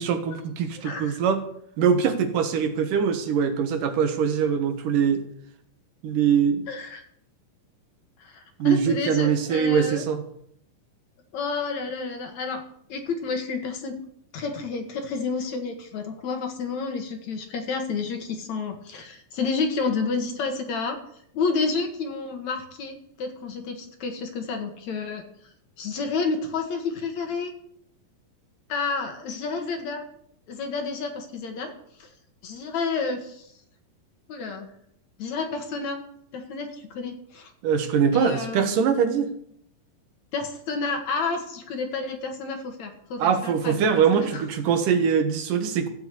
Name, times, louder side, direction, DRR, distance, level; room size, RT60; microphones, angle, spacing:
voice 1, 0.0-1.4 1.8-5.3 6.0-6.6 8.6-10.2 37.6-39.3 43.2-45.9, right 7 dB, 70° right, 8 dB, 2.8 m, -22 dB
voice 2, 0.8-1.2 6.7-7.0 8.2-10.0 11.3-12.6 12.9-14.0 14.3-21.0 21.3-25.2 25.8-27.5 28.7-30.0 30.5-31.7 32.0-32.1 32.4-33.5 34.3-34.7 35.2-36.0 36.3-37.5 38.1-38.8 40.3-44.5, left 4 dB, 60° left, 5 dB, 2.7 m, -30 dB
14.5 x 8.0 x 8.3 m, 0.71 s
omnidirectional pair, 4.0 m